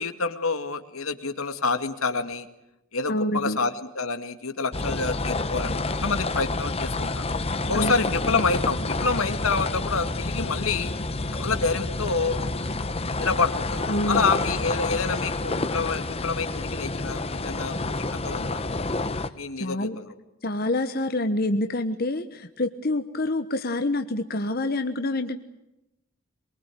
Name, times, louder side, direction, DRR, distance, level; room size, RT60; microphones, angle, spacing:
voice 1, 0.0-2.5 2.9-7.3 7.7-10.9 11.3-12.4 13.2-17.9 18.2-18.6 19.4-20.1, left 4 dB, 80° left, 9 dB, 2.2 m, -28 dB
voice 2, 3.1-3.6 7.7-8.0 13.9-14.2 19.6-20.0 20.4-25.4, left 1 dB, 45° left, 7 dB, 1.2 m, -27 dB
sound 1, 4.7-19.3, left 2 dB, 25° left, 1.1 m, -29 dB
23.5 x 23.5 x 9.2 m, 0.92 s
head